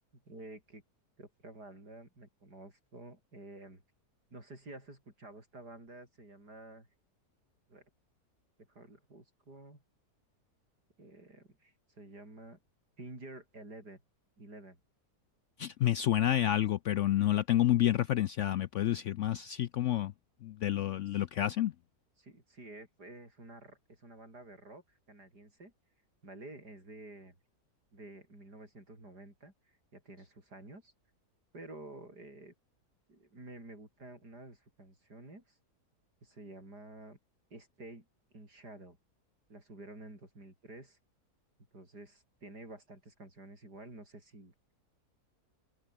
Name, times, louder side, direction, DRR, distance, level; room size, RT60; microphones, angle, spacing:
voice 1, 0.3-0.8 1.2-3.8 4.3-6.9 7.7-7.8 8.7-9.8 11.0-12.6 13.0-14.0 14.4-14.8 21.1-21.2 22.2-25.7 26.2-27.3 27.9-30.9 31.5-32.5 33.1-35.6 36.2-37.2 37.5-38.1 38.3-39.0 39.5-41.0 41.7-44.5, right 2 dB, 80° right, 8.3 m, -51 dB
voice 2, 15.6-20.1 20.4-21.7, left 12 dB, 70° left, 0.7 m, -29 dB
omnidirectional pair, 1.7 m